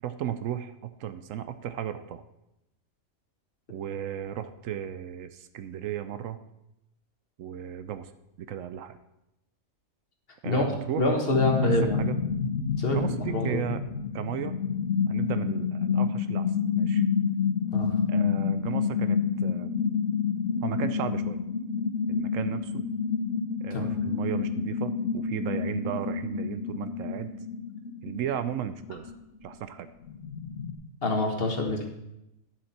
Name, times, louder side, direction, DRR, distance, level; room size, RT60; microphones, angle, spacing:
voice 1, 0.0-2.2 3.7-6.4 7.4-8.1 8.4-9.0 10.4-11.0 11.6-12.2 12.9-13.8 14.1-14.5 15.1-17.0 18.1-19.7 20.6-21.4 22.1-22.8 23.6-27.3 28.0-29.1 29.4-29.9, right 10 dB, 75° right, 11 dB, 0.9 m, -35 dB
voice 2, 11.0-12.0 12.8-13.6 17.7-17.9 23.7-23.9 31.0-31.8, left 2 dB, 45° left, 2 dB, 1.5 m, -26 dB
sound 1, 11.3-29.1 29.5-29.6 30.1-30.7, left 6 dB, 65° left, 1.1 m, -29 dB
10.5 x 7.3 x 4.2 m, 0.88 s
omnidirectional pair, 1.4 m